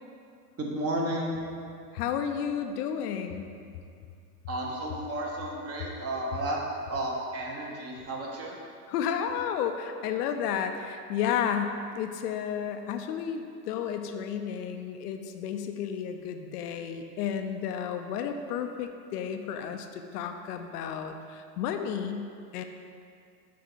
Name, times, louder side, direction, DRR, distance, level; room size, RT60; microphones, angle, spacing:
voice 1, 0.6-1.4 4.5-6.6 6.9-8.6, right 1 dB, 30° right, -1 dB, 1.2 m, -32 dB
voice 2, 1.9-3.4 8.9-22.2 22.5-22.6, left 8 dB, 70° left, 6 dB, 0.6 m, -32 dB
6.5 x 4.6 x 3.9 m, 2.4 s
hypercardioid pair, 105°, 48 cm